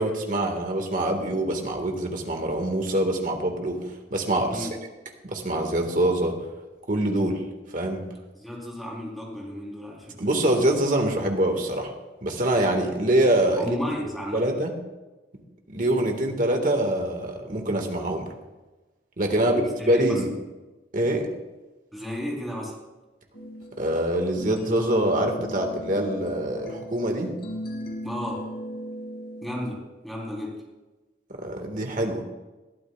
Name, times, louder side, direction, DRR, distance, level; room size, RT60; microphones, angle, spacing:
voice 1, 0.0-3.8 4.1-4.7 5.2-6.4 6.9-7.4 7.7-8.1 10.2-11.9 12.2-13.8 14.3-14.7 15.7-18.3 19.2-19.6 19.9-20.3 20.9-21.3 23.8-27.4 31.3-32.2, right 1 dB, 45° right, 3 dB, 1.8 m, -24 dB
voice 2, 8.3-10.2 13.6-14.6 19.4-20.2 21.9-22.8 28.0-28.5 29.4-30.6, left 1 dB, ahead, -4 dB, 3.7 m, -34 dB
sound 1, 23.3-29.8, equal, 55° left, 2.8 m, -37 dB
21.0 x 12.5 x 2.4 m, 1.2 s
head